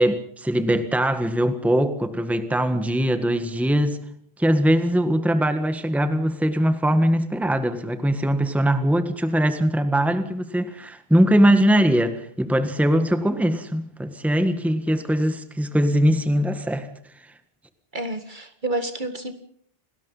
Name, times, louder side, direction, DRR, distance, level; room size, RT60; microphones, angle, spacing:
voice 1, 0.0-4.0 4.4-16.9, equal, ahead, 1.6 m, -21 dB
voice 2, 17.9-19.3, right 2 dB, 50° right, 2.2 m, -29 dB
28.5 x 19.5 x 5.6 m
omnidirectional pair, 1.0 m